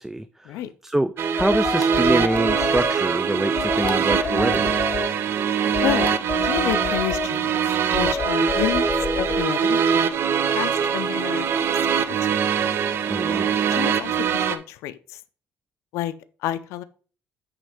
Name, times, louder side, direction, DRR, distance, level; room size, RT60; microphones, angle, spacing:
voice 1, 0.0-4.8 13.1-13.5, right 1 dB, 5° right, 0.3 m, -25 dB
sound 1, 1.2-14.6, right 7 dB, 55° right, 0.8 m, -23 dB
sound 2, 1.4-2.9 3.6-5.1 5.7-7.3 7.9-9.4, left 5 dB, 30° left, 0.6 m, -28 dB
voice 2, 6.4-7.6 7.9-8.9 9.2-9.8 10.5-11.5 12.1-12.4 13.7-15.2 15.9-16.1 16.4-16.8, left 13 dB, 85° left, 0.5 m, -29 dB
8.8 x 3.2 x 5.0 m
cardioid pair, 120°, 5 cm